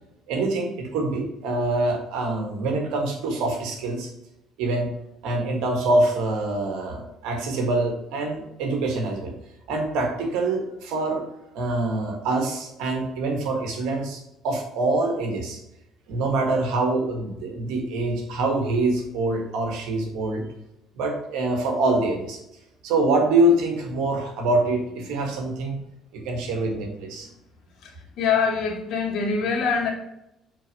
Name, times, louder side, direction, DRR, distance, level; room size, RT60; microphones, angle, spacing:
voice 1, 0.3-4.1 4.6-4.9 5.2-9.3 9.7-11.2 11.5-15.6 16.1-20.4 20.9-22.4 22.8-25.8 26.1-27.3, right 2 dB, 70° right, 2 dB, 1.7 m, -25 dB
voice 2, 27.8-29.9, left 5 dB, 60° left, 1 dB, 2.2 m, -24 dB
7.7 x 4.2 x 4.8 m, 0.84 s
hypercardioid pair, 55°, 0 cm